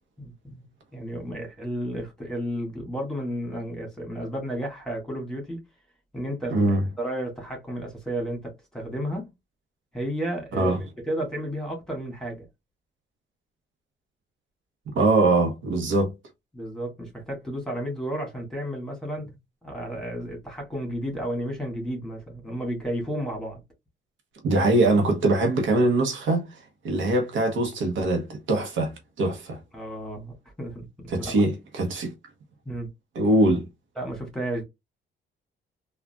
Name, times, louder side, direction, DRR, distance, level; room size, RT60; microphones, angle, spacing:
voice 1, 0.2-0.6 0.9-5.6 6.1-9.3 9.9-10.7 11.1-12.5 16.5-19.3 19.6-23.6 29.7-31.3 32.7-32.9 34.0-34.6, right 1 dB, 5° left, 1.7 m, -32 dB
voice 2, 6.5-6.8 10.6-10.8 14.9-16.1 24.4-26.6 26.8-29.6 31.1-32.1 33.1-33.7, right 2 dB, 75° right, 1.0 m, -22 dB
3.6 x 2.4 x 2.3 m
cardioid pair, 90°, 20 cm